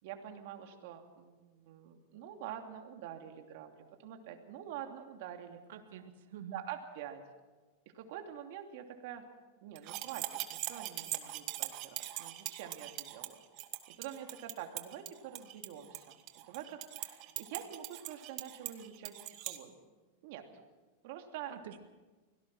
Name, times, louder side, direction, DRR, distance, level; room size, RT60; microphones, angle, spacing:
voice 1, 0.0-5.6 6.5-7.2 7.9-9.2 9.6-13.4 14.0-16.2 16.5-19.7 20.2-20.5 21.0-21.5, right 10 dB, 60° right, 4 dB, 2.7 m, -46 dB
voice 2, 5.7-6.6 21.5-21.8, right 8 dB, 80° right, 7 dB, 1.9 m, -47 dB
sound 1, 9.8-19.6, right 16 dB, 45° right, 1.6 m, -42 dB
24.0 x 17.5 x 6.1 m, 1.2 s
supercardioid pair, 140°, 0 cm